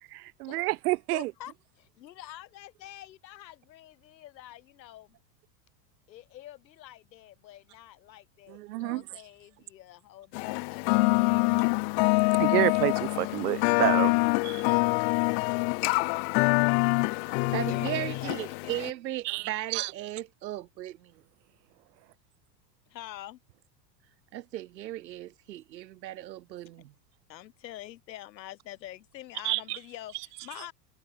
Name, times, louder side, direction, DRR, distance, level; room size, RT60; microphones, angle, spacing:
voice 1, 0.4-1.3 8.5-9.0 12.4-14.1 14.4-14.6 19.3-19.4 19.7-19.9 29.4-29.6, right 21 dB, 65° right, 1.1 m, -28 dB
voice 2, 1.1-5.2 6.1-11.1 17.1-18.5 18.8-18.9 22.9-23.4 27.3-30.7, left 13 dB, 85° left, 5.2 m, -46 dB
sound 1, 10.3-18.9, left 35 dB, 40° left, 0.6 m, -25 dB
voice 3, 17.3-21.2 24.3-26.9, right 14 dB, 85° right, 3.6 m, -37 dB
supercardioid pair, 145°, 50 cm